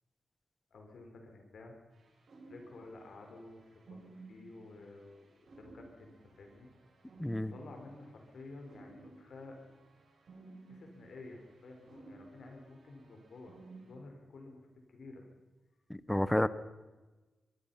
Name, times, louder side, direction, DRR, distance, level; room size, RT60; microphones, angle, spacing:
voice 1, 0.7-1.7 2.5-3.6 3.9-6.7 7.4-9.6 10.7-13.5 13.9-15.3, left 2 dB, 55° left, 3 dB, 4.5 m, -51 dB
sound 1, 1.9-13.9, right 3 dB, 50° right, 7.7 m, -57 dB
voice 2, 7.2-7.5 15.9-16.5, left 1 dB, 5° left, 15 dB, 0.6 m, -30 dB
23.0 x 23.0 x 5.7 m, 1.2 s
wide cardioid pair, 175°, 0 cm